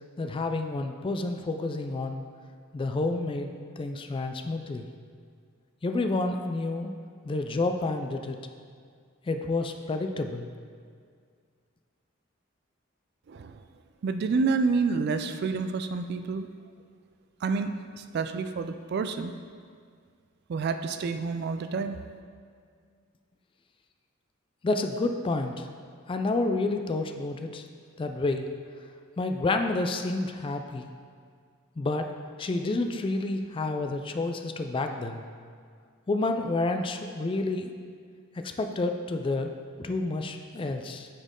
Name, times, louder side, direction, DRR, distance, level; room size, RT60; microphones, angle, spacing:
voice 1, 0.2-2.2 2.7-3.5 3.8-4.9 5.8-6.9 7.2-8.4 9.3-10.5 24.6-25.7 26.1-27.6 28.0-28.5 29.2-30.8 31.8-32.1 32.4-35.2 36.1-37.7 38.4-39.5 39.8-41.1, left 2 dB, 25° left, 6 dB, 0.3 m, -29 dB
voice 2, 13.3-13.6 14.0-16.5 17.4-19.3 20.5-22.0, right 4 dB, 55° right, 9 dB, 0.3 m, -28 dB
8.0 x 4.3 x 3.7 m, 2.1 s
head